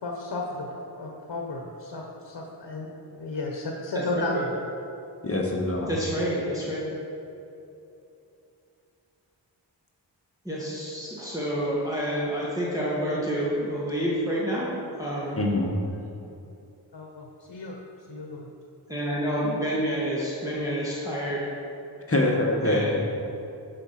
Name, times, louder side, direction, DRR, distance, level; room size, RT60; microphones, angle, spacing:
voice 1, 0.0-4.5 16.9-17.8 18.1-18.5, left 2 dB, 65° left, 0 dB, 1.2 m, -34 dB
voice 2, 3.9-4.4 5.9-6.8 10.5-15.4 18.9-21.5 22.6-23.0, equal, 10° right, -8 dB, 1.9 m, -28 dB
voice 3, 5.2-5.9 15.3-15.8 22.1-23.0, left 2 dB, 30° left, -1 dB, 1.5 m, -24 dB
12.0 x 5.1 x 5.9 m, 2.8 s
wide cardioid pair, 75°, 43 cm